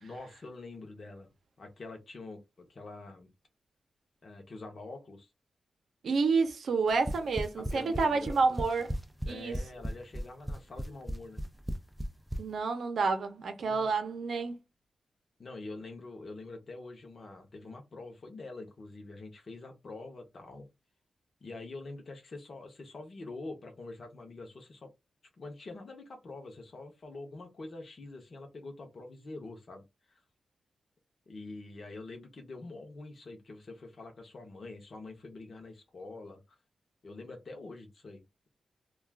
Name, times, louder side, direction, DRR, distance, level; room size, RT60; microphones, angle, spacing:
voice 1, 0.0-3.3 4.2-5.3 7.3-8.4 9.3-11.4 13.6-13.9 15.4-20.7 21.4-24.9 25.4-30.2 31.3-36.6 37.0-38.2, left 3 dB, 40° left, 0.7 m, -45 dB
voice 2, 6.0-8.9 9.3-9.6 12.4-14.6, right 4 dB, 65° right, 0.6 m, -29 dB
sound 1, 6.9-12.4, equal, 5° right, 0.3 m, -35 dB
2.3 x 2.3 x 3.4 m
wide cardioid pair, 175°, 0 cm